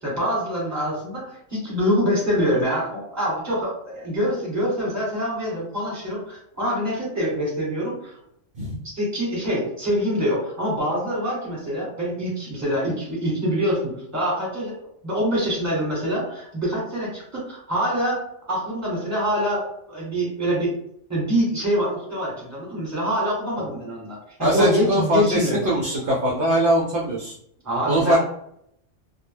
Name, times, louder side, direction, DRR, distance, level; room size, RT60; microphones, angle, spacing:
voice 1, 0.0-8.1 8.8-14.7 15.0-18.2 18.5-20.7 21.1-25.6 27.6-28.2, equal, 15° right, -5 dB, 1.1 m, -25 dB
voice 2, 24.4-27.4 27.9-28.2, right 1 dB, 60° right, -3 dB, 0.6 m, -21 dB
2.2 x 2.0 x 3.2 m, 0.73 s
omnidirectional pair, 1.3 m